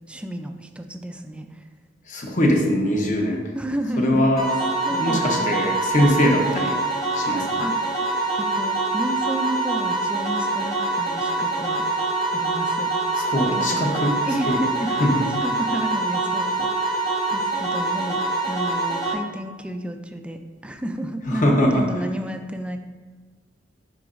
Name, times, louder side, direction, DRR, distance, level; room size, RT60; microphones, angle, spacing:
voice 1, 0.1-1.6 3.5-4.3 4.9-5.4 7.3-8.0 8.4-11.8 12.3-12.9 13.6-13.9 14.2-14.9 15.4-17.0 17.3-22.8, right 1 dB, 5° right, 6 dB, 0.3 m, -31 dB
voice 2, 2.1-3.4 4.0-4.5 4.9-6.8 7.1-7.6 13.1-14.2 14.5-14.6 15.0-15.2 21.3-21.9, equal, 45° left, 1 dB, 0.9 m, -21 dB
sound 1, 4.4-19.1, right 2 dB, 20° left, 1.2 m, -25 dB
10.5 x 3.8 x 2.5 m, 1.4 s
head